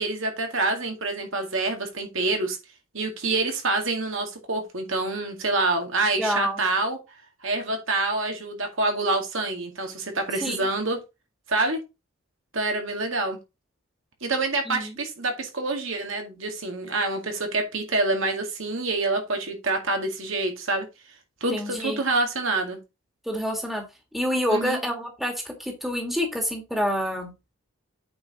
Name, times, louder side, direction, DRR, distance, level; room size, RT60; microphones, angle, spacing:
voice 1, 0.0-2.6 2.9-7.0 7.4-11.0 11.5-11.8 12.5-13.4 14.2-20.9 21.4-22.8 24.5-24.8, right 2 dB, 65° right, 2.1 m, -26 dB
voice 2, 6.2-6.6 10.4-10.7 14.7-14.9 21.5-22.0 23.3-23.8 24.1-27.3, equal, ahead, 1.9 m, -27 dB
8.6 x 4.9 x 4.0 m
head